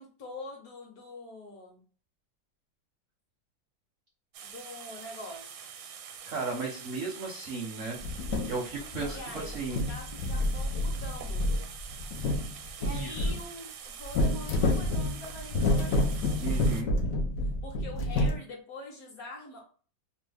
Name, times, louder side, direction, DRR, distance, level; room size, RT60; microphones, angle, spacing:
voice 1, 0.0-1.8 4.4-5.6 9.0-11.7 12.8-16.4 17.4-19.7, left 2 dB, 60° left, 0 dB, 1.1 m, -44 dB
sound 1, 4.3-16.8, right 8 dB, 80° right, 1.3 m, -45 dB
voice 2, 6.3-8.0 8.5-9.2 9.4-9.8 12.9-13.3 16.4-16.9, right 3 dB, 65° right, -2 dB, 0.7 m, -35 dB
sound 2, 8.0-8.6 8.9-9.4 9.7-13.4 14.1-18.4, left 1 dB, 80° left, 0.7 m, -28 dB
3.1 x 2.1 x 3.3 m, 0.40 s
omnidirectional pair, 2.1 m